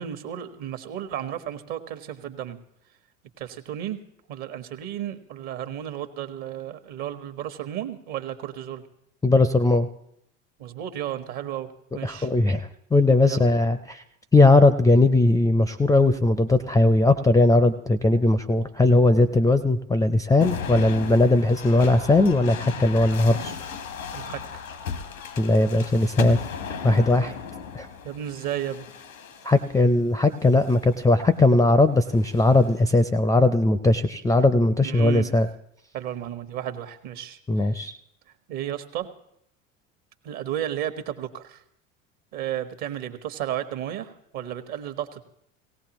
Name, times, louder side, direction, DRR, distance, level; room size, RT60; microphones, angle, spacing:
voice 1, 0.0-2.6 3.4-4.0 4.3-8.8 10.6-12.3 13.2-13.5 24.1-24.6 28.0-28.9 34.8-35.3 35.9-37.7 38.5-39.1 40.2-41.6 42.3-45.2, right 11 dB, 55° right, 9 dB, 1.2 m, -33 dB
voice 2, 9.2-9.9 12.0-14.0 14.3-23.6 25.4-26.4 26.8-27.3 27.7-27.9 29.4-35.5 37.5-37.9, left 2 dB, 10° left, 12 dB, 0.4 m, -19 dB
sound 1, 20.4-29.8 30.5-31.0 32.1-32.8, left 6 dB, 90° left, 1.1 m, -36 dB
18.0 x 17.0 x 3.0 m, 0.74 s
hypercardioid pair, 80°, 39 cm